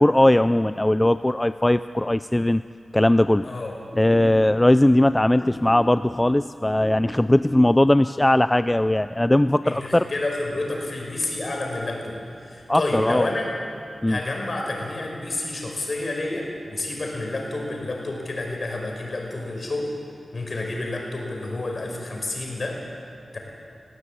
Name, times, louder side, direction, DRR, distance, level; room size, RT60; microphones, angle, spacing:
voice 1, 0.0-2.6 2.9-3.5 4.0-10.1 12.7-13.3 14.0-14.2, left 1 dB, 15° left, 13 dB, 0.4 m, -19 dB
voice 2, 3.4-3.8 9.6-13.5 14.1-19.9 20.3-22.8 23.3-23.4, left 2 dB, 55° left, 0 dB, 5.5 m, -29 dB
20.0 x 16.5 x 8.7 m, 2.4 s
cardioid pair, 55°, 0 cm